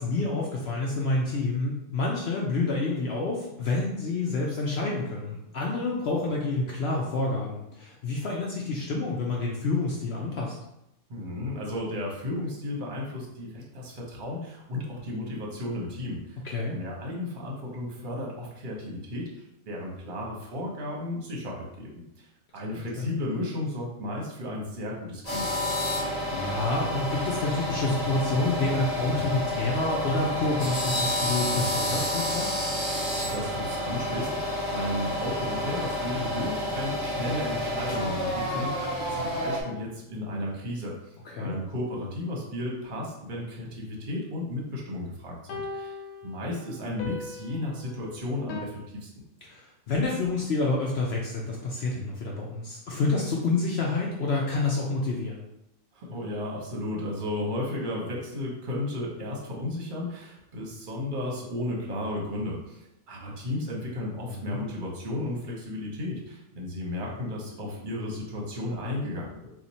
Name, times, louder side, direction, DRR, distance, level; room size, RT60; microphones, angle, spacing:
voice 1, 0.0-10.6 16.4-16.8 23.0-23.1 25.9-32.5 41.3-41.6 49.4-55.4 64.3-64.6, left 3 dB, 65° left, -2 dB, 0.6 m, -28 dB
voice 2, 11.1-16.4 16.7-19.3 19.7-22.3 22.5-25.5 33.2-46.0 46.2-49.1 55.9-69.5, left 1 dB, 40° right, -2 dB, 0.9 m, -34 dB
sound 1, 25.2-39.6, left 1 dB, 30° left, 1.1 m, -29 dB
sound 2, 41.3-41.4 45.5-48.6, left 3 dB, 85° left, 1.1 m, -40 dB
2.9 x 2.4 x 4.0 m, 0.85 s
omnidirectional pair, 1.5 m